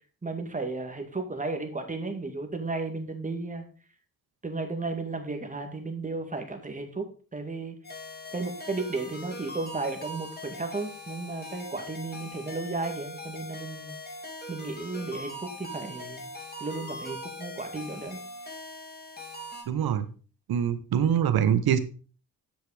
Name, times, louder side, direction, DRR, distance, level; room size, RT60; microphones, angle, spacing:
voice 1, 0.2-3.7 4.4-7.8 8.3-13.9 14.5-16.3 16.6-18.2, right 3 dB, 20° right, 5 dB, 2.0 m, -34 dB
sound 1, 7.8-19.6, left 1 dB, 25° left, 2.5 m, -41 dB
voice 2, 19.7-20.1 20.5-21.8, right 9 dB, 85° right, 11 dB, 1.1 m, -24 dB
8.4 x 6.4 x 4.9 m, 0.38 s
cardioid pair, 95°, 36 cm